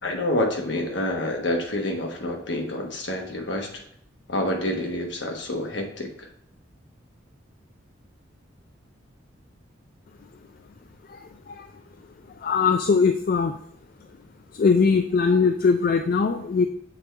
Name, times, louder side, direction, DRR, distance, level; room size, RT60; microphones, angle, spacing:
voice 1, 0.0-3.8 4.3-6.3, left 1 dB, 65° left, 2 dB, 1.2 m, -28 dB
voice 2, 12.4-13.5 14.6-16.7, left 5 dB, 45° left, 7 dB, 0.3 m, -20 dB
7.0 x 4.4 x 3.3 m, 0.68 s
head